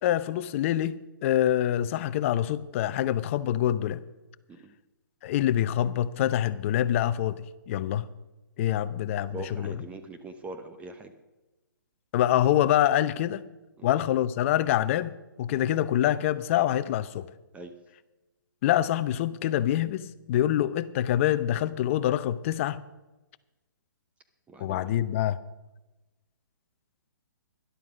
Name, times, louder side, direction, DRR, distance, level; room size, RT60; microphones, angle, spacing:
voice 1, 0.0-4.0 5.2-8.1 8.6-9.7 12.1-13.4 13.8-15.1 15.4-17.3 18.6-22.8 24.6-25.4, left 12 dB, 40° left, 14 dB, 0.7 m, -25 dB
voice 2, 9.3-11.1 13.8-13.9 17.5-17.8 24.5-24.9, right 2 dB, 10° right, 6 dB, 0.8 m, -42 dB
12.5 x 11.5 x 5.1 m, 1.1 s
hypercardioid pair, 140°, 11 cm